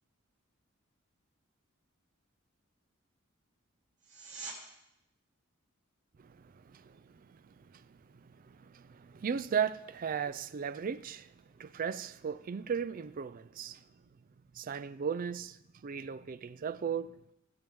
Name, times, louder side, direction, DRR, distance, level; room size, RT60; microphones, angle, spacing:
sound 1, 4.0-4.6 15.9-16.0, right 3 dB, 60° right, 2.9 m, -44 dB
voice 1, 8.2-11.3 11.6-13.8 14.5-15.6 15.8-17.1, right 7 dB, 40° right, 0.4 m, -36 dB
16.5 x 7.6 x 3.6 m
head